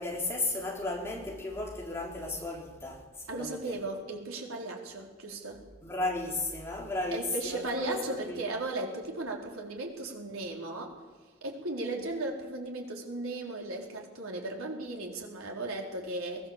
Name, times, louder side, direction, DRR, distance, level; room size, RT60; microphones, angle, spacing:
voice 1, 0.0-3.0 3.4-3.6 5.8-8.4, left 2 dB, 10° left, 3.6 m, -34 dB
voice 2, 3.3-5.6 7.1-11.0 11.4-16.5, right 2 dB, 85° right, 4.4 m, -36 dB
22.5 x 18.5 x 7.5 m
head